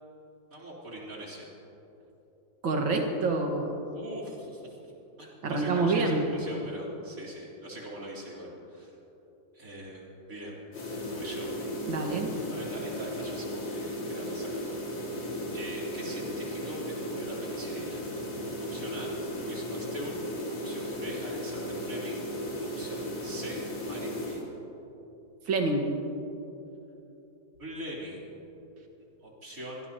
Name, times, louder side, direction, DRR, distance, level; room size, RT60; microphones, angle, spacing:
voice 1, 0.5-1.5 3.9-4.8 5.2-8.9 9.5-10.6 11.1-11.5 12.5-14.6 15.1-18.0 18.7-20.2 20.6-22.2 22.8-24.4 27.6-28.2 29.2-29.8, equal, 45° right, -5 dB, 4.0 m, -42 dB
voice 2, 2.6-3.8 5.4-6.3 11.9-12.3 25.5-25.9, right 3 dB, 80° right, 2 dB, 2.5 m, -27 dB
sound 1, 10.7-24.4, equal, 60° left, 3.0 m, -35 dB
25.0 x 18.0 x 3.0 m, 3.0 s
omnidirectional pair, 2.1 m